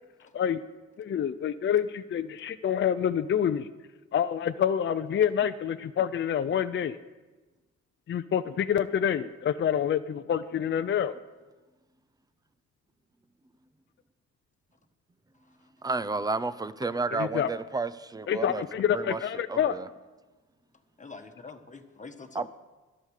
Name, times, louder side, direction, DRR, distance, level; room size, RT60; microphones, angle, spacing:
voice 1, 1.0-3.7 4.1-7.0 8.1-11.1 17.1-17.5 18.3-19.8, left 9 dB, 40° left, 0.6 m, -27 dB
voice 2, 15.8-18.6 18.9-19.2 19.5-19.9 22.3-22.5, right 3 dB, 15° right, 0.6 m, -31 dB
voice 3, 21.0-22.5, left 4 dB, 25° left, 1.4 m, -45 dB
13.0 x 11.0 x 6.6 m
cardioid pair, 90°, 30 cm